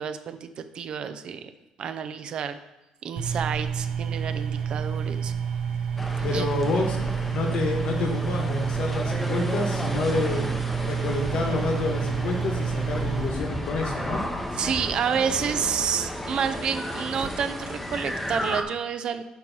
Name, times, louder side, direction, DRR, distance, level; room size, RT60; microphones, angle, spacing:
voice 1, 0.0-1.5 1.8-2.6 3.0-5.3 6.3-6.5 14.6-19.2, right 7 dB, 40° right, 10 dB, 0.4 m, -29 dB
sound 1, 3.2-13.3, right 7 dB, 85° right, 1.1 m, -29 dB
sound 2, 6.0-18.6, equal, 5° left, 0.7 m, -33 dB
voice 2, 6.2-7.0 7.3-10.4 10.8-14.2, left 3 dB, 55° left, 2 dB, 1.4 m, -28 dB
8.8 x 3.1 x 6.1 m, 1.0 s
cardioid pair, 165°, 2 cm